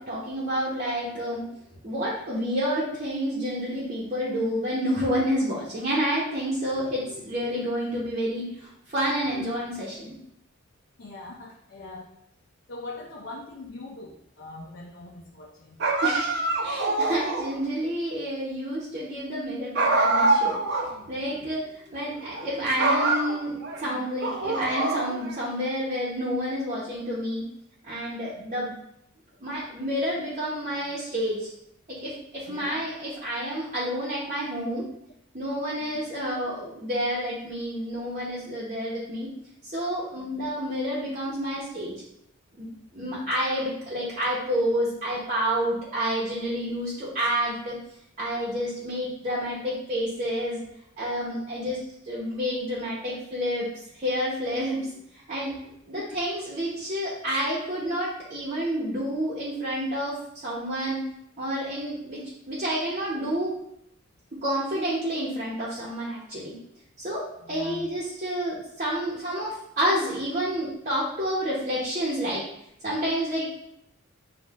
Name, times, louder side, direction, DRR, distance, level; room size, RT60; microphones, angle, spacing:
voice 1, 0.0-1.4 1.8-10.2 16.0-20.6 21.1-27.4 27.9-28.7 29.4-31.5 32.0-34.8 35.3-39.3 39.6-41.9 42.5-47.8 48.2-50.6 51.0-51.8 52.0-53.7 53.9-54.8 55.1-60.2 60.4-61.0 61.4-62.2 62.5-63.5 64.4-66.5 67.0-72.4 72.8-73.5, equal, 40° right, -7 dB, 1.0 m, -29 dB
voice 2, 11.0-12.1 12.7-15.8 28.3-28.6 32.5-32.8 35.8-36.1 40.1-40.5 42.9-43.2 51.6-51.8 56.0-56.2 67.4-67.9, left 2 dB, 60° left, -1 dB, 0.5 m, -42 dB
sound 1, 15.8-17.6 19.8-20.9 21.2-21.3 22.2-22.5 22.8-23.8 24.2-25.4, right 2 dB, 55° right, 0.6 m, -25 dB
7.3 x 2.4 x 2.4 m, 0.75 s
head